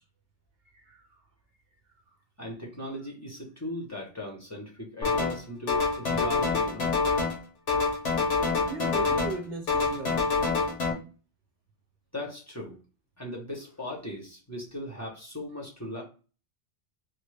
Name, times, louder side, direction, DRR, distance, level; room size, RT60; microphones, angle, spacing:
voice 1, 0.7-1.2 8.6-10.3, right 4 dB, 65° right, 0.8 m, -38 dB
voice 2, 2.4-6.9 12.1-12.8 13.2-16.0, left 1 dB, 15° left, 0.7 m, -38 dB
sound 1, 5.0-5.4 5.7-7.4 7.7-9.4 9.7-10.9, left 4 dB, 85° left, 1.2 m, -26 dB
3.5 x 2.1 x 3.2 m
omnidirectional pair, 1.2 m